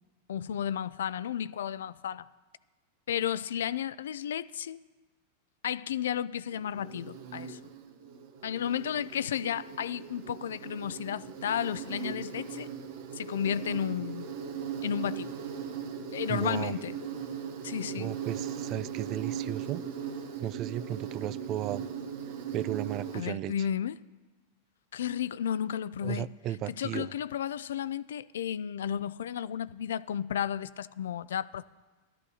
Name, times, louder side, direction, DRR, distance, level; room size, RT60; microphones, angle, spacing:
voice 1, 0.3-2.3 3.1-4.8 5.6-7.6 8.4-12.7 13.2-14.3 14.8-15.4 16.1-17.0 17.6-18.1 23.1-24.0 24.9-26.3 26.8-31.6, left 9 dB, 80° left, 0.3 m, -33 dB
Insect, 6.5-23.2, right 7 dB, 70° right, 0.9 m, -39 dB
voice 2, 16.3-16.8 18.0-19.8 20.4-21.8 22.5-23.5 26.0-27.1, right 12 dB, 40° right, 0.3 m, -35 dB
14.5 x 12.5 x 2.8 m
hypercardioid pair, 115°, 0 cm